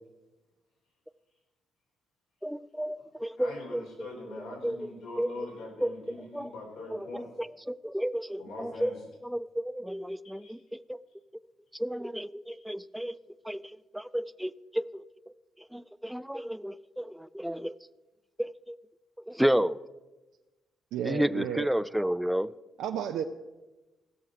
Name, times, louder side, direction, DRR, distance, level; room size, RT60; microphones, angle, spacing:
voice 1, 2.4-4.3 4.6-4.9 5.2-5.3 5.8-6.5 6.9-8.9 9.2-11.0 11.7-13.2 13.4-13.6 13.9-15.0 15.7-17.7 18.4-18.8 19.3-19.8 21.0-22.5, equal, 5° right, 17 dB, 0.4 m, -32 dB
voice 2, 3.4-7.3 8.4-8.9 10.2-10.5, left 2 dB, 90° left, -2 dB, 4.3 m, -43 dB
voice 3, 20.9-21.7 22.8-23.2, right 9 dB, 90° right, 5 dB, 0.5 m, -32 dB
16.5 x 6.5 x 5.8 m, 1.1 s
cardioid pair, 90°, 0 cm